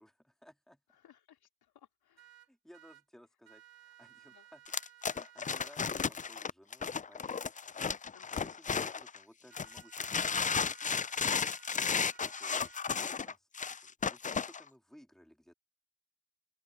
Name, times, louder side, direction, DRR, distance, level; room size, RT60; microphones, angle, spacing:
voice 1, 0.0-1.0 2.5-4.6 5.1-7.4 8.4-12.1 12.4-12.7 13.1-15.5, equal, ahead, 3.7 m, -60 dB
voice 2, 0.9-2.4 4.2-4.5 8.1-8.6 11.8-12.1, left 10 dB, 65° left, 3.9 m, -60 dB
sound 1, 2.2-3.0 3.5-5.7 9.5-13.2, right 13 dB, 65° right, 2.8 m, -59 dB
sound 2, 4.7-9.2 9.6-14.6, left 6 dB, 20° left, 0.5 m, -34 dB
open air
supercardioid pair, 60°, 39 cm